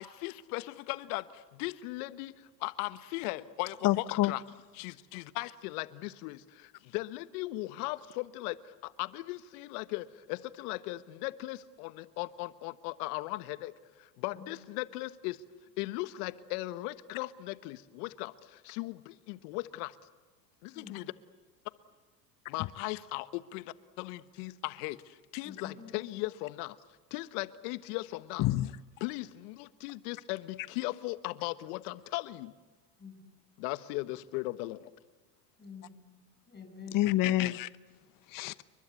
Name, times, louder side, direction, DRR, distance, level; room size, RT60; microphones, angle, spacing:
voice 1, 0.0-4.4 4.7-15.4 15.8-20.0 20.6-21.1 22.5-26.8 27.1-28.5 29.0-32.5 33.6-34.9, left 19 dB, 65° left, 1.4 m, -38 dB
voice 2, 3.8-4.3 28.4-28.7 36.9-37.7 38.3-38.6, left 15 dB, 40° left, 1.0 m, -27 dB
voice 3, 25.4-25.9 33.0-33.2 35.6-36.2 36.5-37.1, left 5 dB, 20° left, 8.0 m, -48 dB
29.5 x 23.5 x 8.5 m
hypercardioid pair, 90°, 50 cm